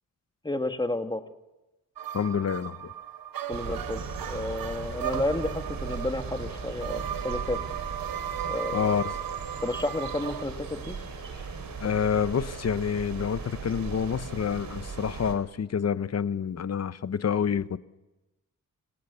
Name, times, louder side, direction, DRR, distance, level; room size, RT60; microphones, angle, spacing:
voice 1, 0.4-1.2 3.5-7.6 8.5-9.0 9.6-11.0, left 2 dB, 15° left, 1.7 m, -31 dB
sound 1, 2.0-10.4, right 10 dB, 90° right, 0.9 m, -36 dB
voice 2, 2.1-2.9 8.7-9.0 11.8-17.8, left 7 dB, 50° left, 0.9 m, -28 dB
sound 2, 3.5-15.3, right 5 dB, 70° right, 4.3 m, -38 dB
27.5 x 25.0 x 6.9 m
wide cardioid pair, 115°, 34 cm